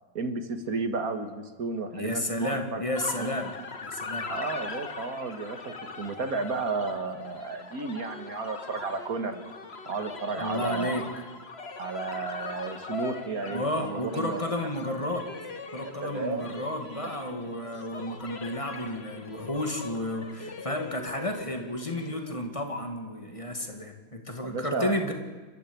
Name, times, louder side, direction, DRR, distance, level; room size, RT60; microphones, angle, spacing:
voice 1, 0.1-2.8 3.2-3.4 4.3-9.4 9.9-11.0 11.8-14.4 16.0-16.5 24.4-24.9, right 4 dB, 50° right, 8 dB, 2.1 m, -33 dB
voice 2, 1.9-3.5 3.8-4.3 10.4-11.0 13.5-15.3 15.7-25.1, left 1 dB, 15° left, 4 dB, 2.1 m, -32 dB
sound 1, 2.9-22.4, left 4 dB, 35° left, 1.5 m, -41 dB
29.0 x 13.0 x 8.6 m, 1.3 s
omnidirectional pair, 2.2 m